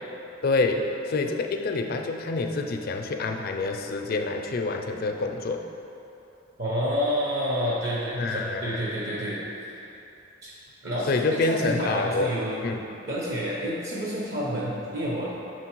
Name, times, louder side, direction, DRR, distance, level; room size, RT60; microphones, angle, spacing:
voice 1, 0.4-5.6 8.1-8.7 11.1-12.3 12.6-12.8, left 3 dB, 50° left, 4 dB, 0.5 m, -27 dB
voice 2, 6.6-9.4 10.4-10.5 10.8-12.6 13.1-15.3, equal, 55° right, -6 dB, 0.9 m, -29 dB
6.5 x 4.5 x 4.5 m, 3.0 s
head